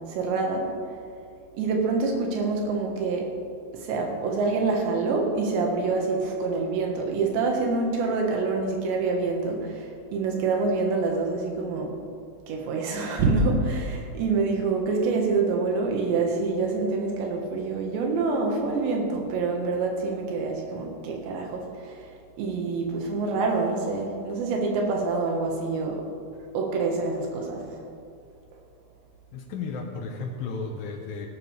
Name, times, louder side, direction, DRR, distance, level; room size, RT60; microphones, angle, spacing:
voice 1, 0.1-0.7 1.5-3.3 3.7-11.9 12.5-22.1 22.4-26.0 26.5-27.7, right 3 dB, 85° right, 1 dB, 3.8 m, -26 dB
voice 2, 29.3-31.3, left 4 dB, 70° left, 2 dB, 2.3 m, -34 dB
17.0 x 12.0 x 3.5 m, 2.4 s
omnidirectional pair, 5.0 m